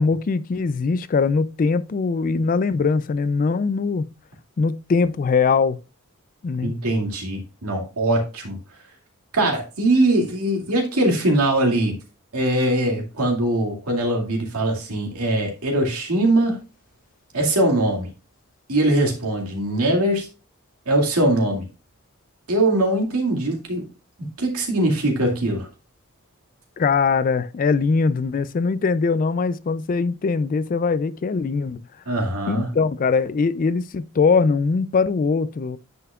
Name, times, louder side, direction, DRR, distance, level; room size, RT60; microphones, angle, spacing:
voice 1, 0.0-4.1 4.6-5.8 6.4-6.7 26.8-31.8 32.5-35.8, left 4 dB, 40° left, 0.3 m, -21 dB
voice 2, 6.6-8.6 9.3-11.9 12.3-16.6 17.3-18.1 18.7-20.3 20.9-21.6 22.5-23.9 24.4-25.7 32.1-32.7, right 1 dB, 85° right, 2.2 m, -21 dB
9.5 x 5.6 x 2.3 m
head